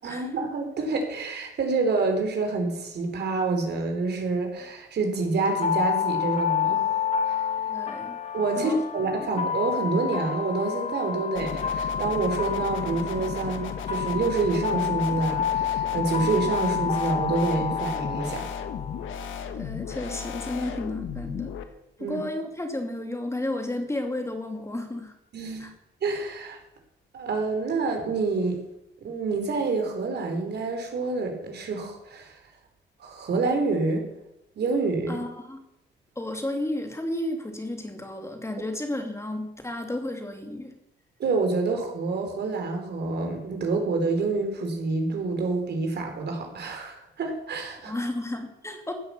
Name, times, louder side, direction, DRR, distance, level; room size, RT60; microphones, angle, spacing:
voice 1, 0.0-6.9 7.3-7.4 8.3-18.5 22.0-22.2 25.3-25.7 26.0-26.6 27.1-28.6 29.0-32.4 33.0-34.0 34.6-35.2 41.2-47.9, right 3 dB, 60° right, 3 dB, 4.0 m, -27 dB
sound 1, 5.4-19.3, left 7 dB, 35° left, 1.6 m, -29 dB
voice 2, 7.7-8.2 8.6-8.8 9.2-9.3 19.6-21.5 22.0-25.1 25.6-25.7 35.1-35.6 36.2-40.7 47.9-48.9, left 1 dB, 15° left, 4 dB, 2.5 m, -32 dB
sound 2, 11.3-21.6, left 7 dB, 80° left, 1.6 m, -35 dB
15.5 x 8.6 x 7.1 m, 0.85 s
cardioid pair, 90°, 20 cm